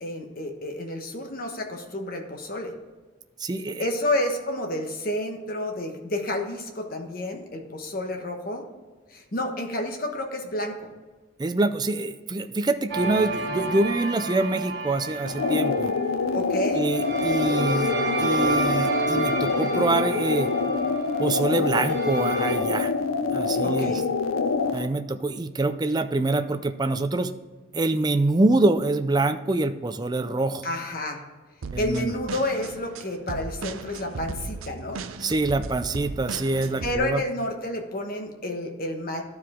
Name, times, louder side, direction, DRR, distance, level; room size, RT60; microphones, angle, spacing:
voice 1, 0.0-2.7 3.8-8.6 9.1-10.8 16.3-16.8 23.6-24.0 30.6-31.2 31.8-35.0 36.8-39.2, left 1 dB, 45° left, 3 dB, 1.2 m, -30 dB
voice 2, 3.4-3.9 11.4-15.9 16.7-17.9 18.2-20.5 21.2-22.9 23.3-24.0 24.7-27.3 27.7-30.7 31.7-32.1 35.2-37.2, right 2 dB, 20° right, 9 dB, 0.4 m, -25 dB
sound 1, 12.9-16.2 16.9-22.6, right 3 dB, 55° right, 1.3 m, -30 dB
sound 2, 15.3-24.9, left 4 dB, 90° left, 0.6 m, -26 dB
sound 3, 31.6-37.0, right 4 dB, 85° right, 0.5 m, -36 dB
12.5 x 4.8 x 3.7 m, 1.3 s
head